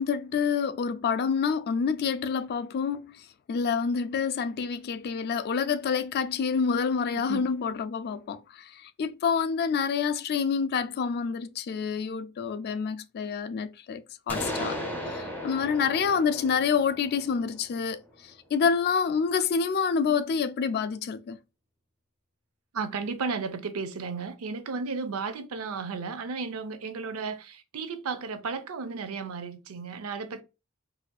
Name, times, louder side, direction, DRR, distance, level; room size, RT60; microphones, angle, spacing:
voice 1, 0.0-3.2 3.5-14.8 15.1-18.0 18.5-21.4, left 6 dB, 45° left, 0.3 m, -27 dB
voice 2, 7.1-7.6 22.7-30.4, right 4 dB, 70° right, 0.5 m, -34 dB
sound 1, 14.3-18.1, left 1 dB, 10° left, 0.7 m, -36 dB
4.1 x 2.5 x 2.2 m
head